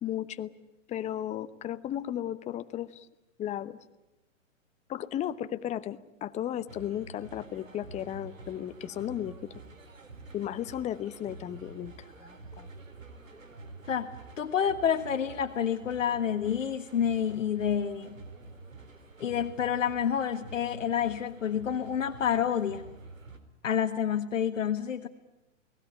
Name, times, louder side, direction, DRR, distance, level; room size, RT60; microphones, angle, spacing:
voice 1, 0.0-0.5 0.9-3.1 3.4-3.8 4.9-9.5 10.3-12.7, left 11 dB, 20° left, 13 dB, 1.0 m, -35 dB
sound 1, 6.7-23.4, right 3 dB, 85° right, 3.8 m, -48 dB
voice 2, 14.4-18.2 19.2-22.9 23.6-25.1, left 8 dB, 75° left, 4 dB, 1.6 m, -28 dB
29.0 x 19.5 x 10.0 m, 0.99 s
hypercardioid pair, 120°, 38 cm